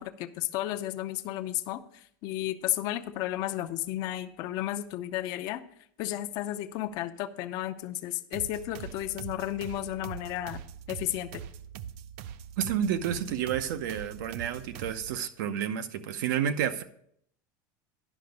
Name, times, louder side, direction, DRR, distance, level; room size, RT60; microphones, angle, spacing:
voice 1, 0.0-5.6 6.0-10.6 10.9-11.4, left 14 dB, 40° left, 7 dB, 0.5 m, -33 dB
sound 1, 8.3-15.2, right 9 dB, 55° right, 0.4 m, -42 dB
voice 2, 12.6-16.8, right 9 dB, 75° right, 11 dB, 0.8 m, -30 dB
10.0 x 5.8 x 5.2 m, 0.68 s
supercardioid pair, 170°, 10 cm